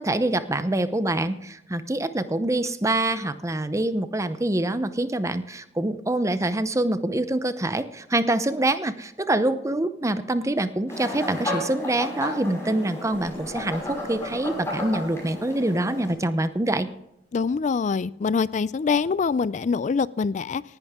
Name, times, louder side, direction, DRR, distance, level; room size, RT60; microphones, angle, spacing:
voice 1, 0.0-16.9, right 1 dB, 20° right, 12 dB, 0.7 m, -25 dB
sound 1, 10.9-16.1, left 1 dB, 15° left, 5.8 m, -33 dB
sound 2, 13.1-17.1, right 1 dB, 50° right, 2.5 m, -50 dB
voice 2, 17.3-20.6, left 5 dB, 45° left, 20 dB, 0.3 m, -24 dB
18.5 x 10.5 x 3.6 m, 0.82 s
head